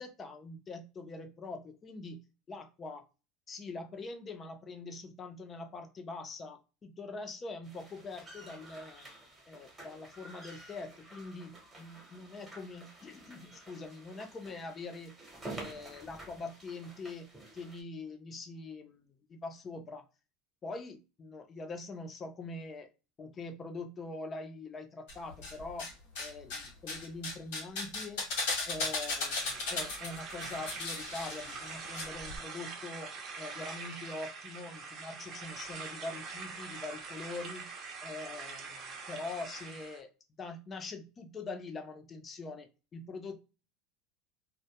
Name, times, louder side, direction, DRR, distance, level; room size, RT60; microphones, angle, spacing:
voice 1, 0.0-2.2 2.5-3.0 3.5-9.1 9.5-15.1 15.5-17.3 17.5-20.0 20.6-22.9 23.2-25.9 26.2-28.2 28.7-33.1 33.4-37.7 38.0-40.1 40.4-43.4, left 3 dB, 25° left, 6 dB, 0.5 m, -43 dB
sound 1, 7.6-17.8, right 2 dB, 10° right, 0.9 m, -50 dB
sound 2, 25.1-25.9 26.2-32.0 32.3-32.4, left 3 dB, 80° left, 1.1 m, -36 dB
sound 3, 29.1-40.0, right 4 dB, 40° right, 0.6 m, -44 dB
2.1 x 2.1 x 2.8 m, 0.31 s
supercardioid pair, 130°, 0 cm